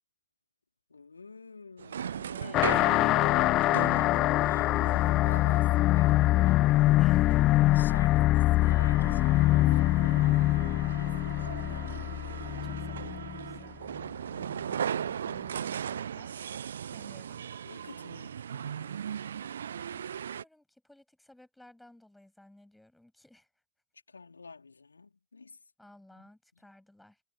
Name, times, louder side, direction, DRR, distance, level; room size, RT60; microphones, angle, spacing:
voice 1, 0.9-2.6 3.0-4.9 5.1-6.4 7.7-10.2 11.0-11.9 17.6-19.0 24.1-25.6 26.1-26.7, left 4 dB, 75° left, 4.0 m, -48 dB
sound 1, 1.8-20.4, right 8 dB, 65° right, 0.7 m, -39 dB
voice 2, 2.1-3.5 7.0-7.4 12.4-13.8 14.7-16.4 16.9-17.4 19.9-23.5 25.8-27.2, left 1 dB, 5° left, 7.4 m, -56 dB
sound 2, 2.5-13.5, left 16 dB, 35° left, 0.4 m, -24 dB
figure-of-eight pair, 90°, 0 cm